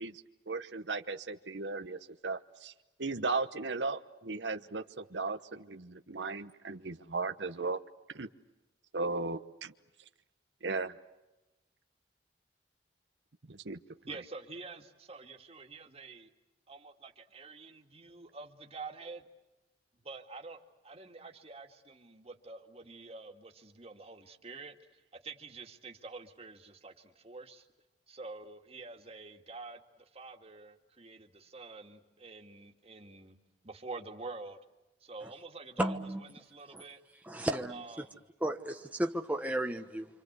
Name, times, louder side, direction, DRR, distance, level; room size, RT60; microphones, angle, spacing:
voice 1, 0.0-2.7 3.0-7.8 8.1-8.3 8.9-9.7 10.6-10.9 13.5-13.8, right 3 dB, 80° right, 1.1 m, -36 dB
voice 2, 14.1-16.3 16.7-19.3 19.9-27.7 28.1-33.4 33.6-34.6 35.0-37.0 37.7-38.2, right 3 dB, 35° right, 2.2 m, -47 dB
voice 3, 35.8-36.2 36.7-36.8 37.2-38.0 38.4-40.1, right 1 dB, 10° right, 1.1 m, -33 dB
27.5 x 27.0 x 8.2 m
head